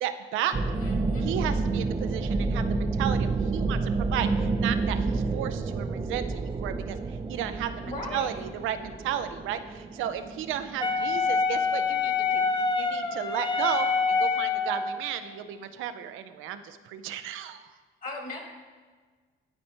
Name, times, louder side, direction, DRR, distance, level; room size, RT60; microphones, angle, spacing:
voice 1, 0.0-0.5 1.2-7.0 7.3-12.4 12.8-17.7, right 10 dB, 90° right, 10 dB, 0.5 m, -34 dB
sound 1, 0.5-13.1, right 3 dB, 25° right, 0.5 m, -29 dB
voice 2, 0.7-1.3 7.8-8.3 18.0-18.4, left 2 dB, 45° left, 0 dB, 1.8 m, -37 dB
Wind instrument woodwind instrument, 10.8-15.0, left 4 dB, 25° left, 0.6 m, -26 dB
12.0 x 4.2 x 2.9 m, 1.5 s
cardioid pair, 90°, 20 cm